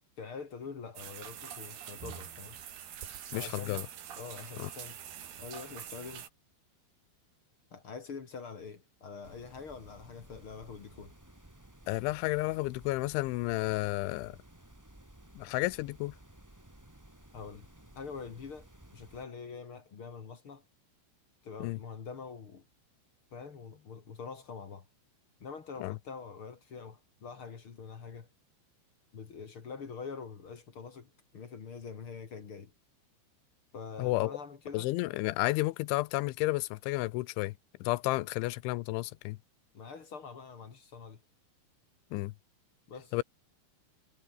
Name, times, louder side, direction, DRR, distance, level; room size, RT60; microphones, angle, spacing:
voice 1, 0.2-2.6 3.3-3.8 4.2-5.0 5.4-6.3 7.7-11.1 17.3-17.7 17.9-20.6 21.4-22.7 23.3-24.9 25.4-28.3 29.1-32.7 33.7-34.9 39.7-41.2 42.9-43.2, left 5 dB, 40° left, 2.0 m, -45 dB
sound 1, 0.9-6.3, right 9 dB, 60° right, 4.4 m, -45 dB
voice 2, 3.3-3.9 4.6-4.7 11.9-14.4 15.4-16.2 21.6-21.8 25.8-26.0 34.0-34.4 34.7-37.5 37.8-39.4 42.1-42.3 43.1-43.2, left 20 dB, 80° left, 3.1 m, -31 dB
sound 2, 9.2-19.2, right 1 dB, 10° right, 0.7 m, -56 dB
omnidirectional pair, 5.5 m